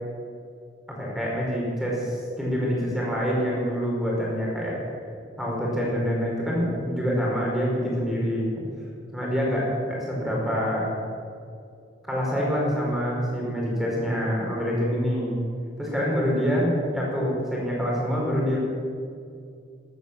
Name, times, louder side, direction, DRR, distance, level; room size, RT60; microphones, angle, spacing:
voice 1, 0.9-4.8 5.4-8.5 9.1-10.9 12.1-15.4 15.8-18.6, equal, ahead, -4 dB, 5.1 m, -26 dB
14.5 x 12.5 x 7.9 m, 2.4 s
head